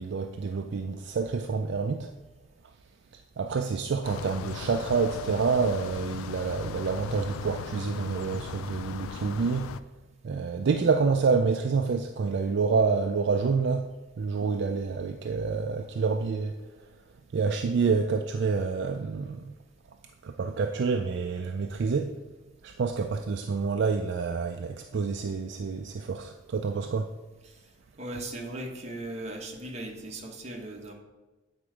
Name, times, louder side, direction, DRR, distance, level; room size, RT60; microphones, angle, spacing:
voice 1, 0.0-2.1 3.1-9.8 10.2-16.6 17.3-19.5 20.2-22.2 22.6-27.1, right 5 dB, 55° right, 0.3 m, -28 dB
sound 1, 4.0-9.8, left 7 dB, 80° left, 0.3 m, -39 dB
voice 2, 28.0-30.9, right 1 dB, 30° right, 1.0 m, -38 dB
8.6 x 4.4 x 4.8 m
head